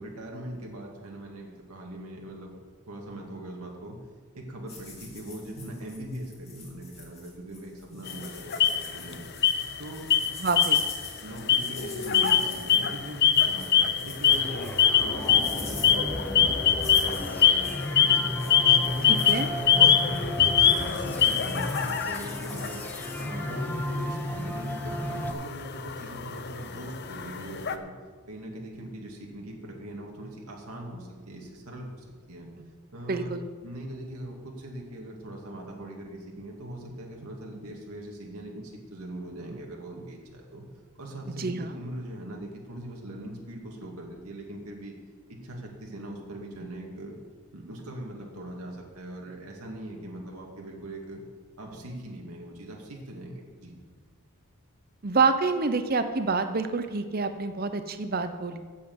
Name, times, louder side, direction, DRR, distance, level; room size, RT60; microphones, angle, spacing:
voice 1, 0.0-2.5 2.9-4.0 4.3-9.2 9.8-10.1 11.2-20.4 20.7-22.9 23.2-27.9 28.3-32.5 32.9-33.4 33.6-40.7 41.0-44.9 45.3-47.2 47.5-51.2 51.6-53.7, right 1 dB, 90° right, 0 dB, 2.1 m, -41 dB
sound 1, 4.7-23.2, left 4 dB, 25° left, 2.4 m, -45 dB
sound 2, 8.1-9.1 9.4-9.8 10.1-11.1 11.4-27.8, left 8 dB, 50° left, 0.6 m, -24 dB
voice 2, 10.4-10.8 12.2-12.4 19.1-19.5 33.1-33.5 41.4-41.7 55.0-58.6, right 4 dB, 45° right, 9 dB, 0.7 m, -27 dB
sound 3, 14.3-25.3, equal, 10° left, 0.6 m, -34 dB
8.6 x 7.7 x 7.8 m, 1.5 s
head